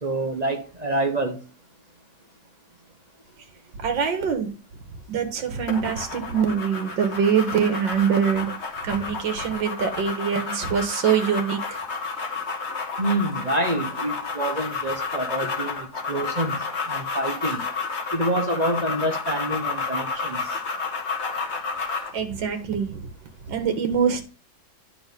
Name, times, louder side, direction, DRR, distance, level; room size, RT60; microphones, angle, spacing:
voice 1, 0.0-1.4 13.0-17.6 18.1-20.6, right 1 dB, 30° right, 1.0 m, -27 dB
voice 2, 3.8-4.5 5.1-8.5 8.8-11.8 22.1-23.1 23.5-24.2, right 7 dB, 85° right, 2.0 m, -24 dB
sound 1, 5.7-22.2, left 4 dB, 40° left, 1.7 m, -31 dB
9.7 x 5.8 x 3.6 m
omnidirectional pair, 1.9 m